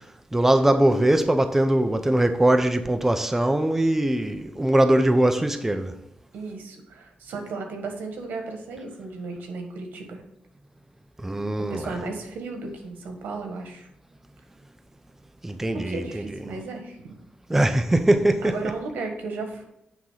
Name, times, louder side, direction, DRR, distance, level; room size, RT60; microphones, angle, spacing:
voice 1, 0.3-5.9 11.2-11.9 15.4-16.0 17.5-18.5, right 1 dB, 10° right, 0.7 m, -21 dB
voice 2, 6.3-10.2 11.6-13.9 15.7-17.0 18.4-19.7, right 3 dB, 85° right, 1.6 m, -34 dB
9.2 x 3.7 x 5.7 m
cardioid pair, 90°, 3 cm